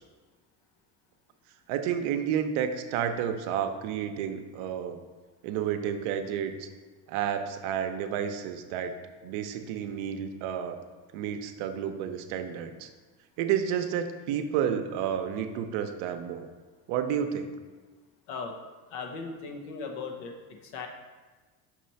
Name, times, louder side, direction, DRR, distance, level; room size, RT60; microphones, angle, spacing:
voice 1, 1.7-5.0 5.4-6.7 7.1-8.9 9.2-10.8 11.1-12.9 13.4-16.5 16.9-17.5, right 8 dB, 75° right, 7 dB, 0.7 m, -30 dB
voice 2, 18.9-20.3 20.6-20.9, left 4 dB, 75° left, 3 dB, 1.1 m, -37 dB
6.1 x 3.1 x 5.6 m, 1.3 s
supercardioid pair, 85°, 49 cm